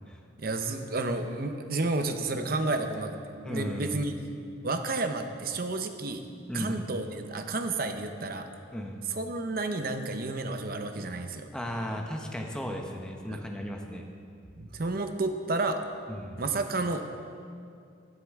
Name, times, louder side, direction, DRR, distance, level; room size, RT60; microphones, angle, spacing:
voice 1, 0.4-3.2 3.5-4.1 4.6-6.2 6.5-8.5 9.1-11.5 13.3-13.4 14.6-15.8 16.4-17.2, right 2 dB, 45° right, 7 dB, 0.7 m, -31 dB
voice 2, 3.4-4.0 6.5-6.9 8.7-9.1 11.5-14.1 16.1-16.4, equal, 5° left, 1 dB, 0.8 m, -35 dB
14.5 x 9.7 x 3.6 m, 2.4 s
head